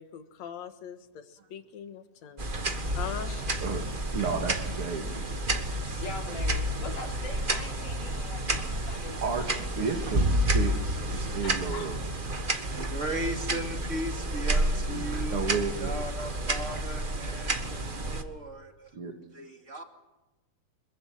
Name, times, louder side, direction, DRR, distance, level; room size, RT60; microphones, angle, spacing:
voice 1, 0.0-2.6 2.9-3.5, left 8 dB, 60° left, 9 dB, 2.6 m, -41 dB
sound 1, 2.4-18.2, right 1 dB, 85° right, 0.4 m, -30 dB
voice 2, 3.6-5.3 9.2-12.1 14.9-15.0 15.3-15.9 18.9-19.1, right 5 dB, 45° right, 3 dB, 2.9 m, -33 dB
voice 3, 6.0-9.2 11.4-11.9 12.2-12.3, left 4 dB, 75° left, 1 dB, 5.3 m, -42 dB
voice 4, 12.7-19.0 19.3-19.8, right 1 dB, 25° right, 4 dB, 2.6 m, -37 dB
26.5 x 22.5 x 7.7 m, 1.1 s
omnidirectional pair, 3.7 m